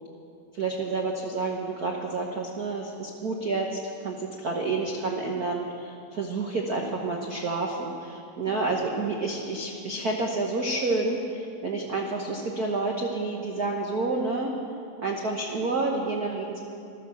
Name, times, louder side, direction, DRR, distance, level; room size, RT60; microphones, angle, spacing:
voice 1, 0.5-14.5 15.0-16.6, right 3 dB, 85° right, 0 dB, 0.8 m, -29 dB
14.0 x 13.0 x 7.0 m, 2.5 s
omnidirectional pair, 3.4 m